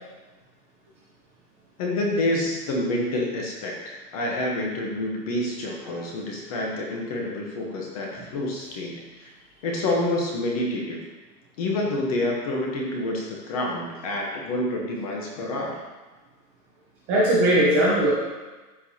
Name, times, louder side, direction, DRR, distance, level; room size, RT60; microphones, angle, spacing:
voice 1, 1.8-9.3 9.6-11.0 11.6-15.8, left 1 dB, 25° left, -1 dB, 0.9 m, -28 dB
voice 2, 17.1-18.1, right 1 dB, 15° right, -7 dB, 0.7 m, -20 dB
13.5 x 4.7 x 2.8 m, 1.2 s
hypercardioid pair, 165°, 48 cm